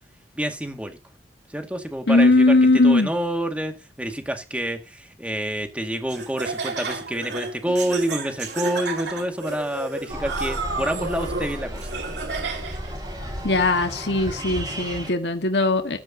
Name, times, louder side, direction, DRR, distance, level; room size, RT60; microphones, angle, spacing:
voice 1, 0.4-1.0 1.5-2.6 2.8-11.9 12.7-12.8, right 1 dB, 10° right, 2.0 m, -28 dB
voice 2, 2.1-3.1 13.4-16.0, left 2 dB, 75° left, 1.6 m, -19 dB
Laughter, 6.1-12.9, right 3 dB, 70° right, 2.9 m, -31 dB
sound 1, 10.1-15.1, equal, 25° right, 7.9 m, -33 dB
14.0 x 12.0 x 2.8 m
head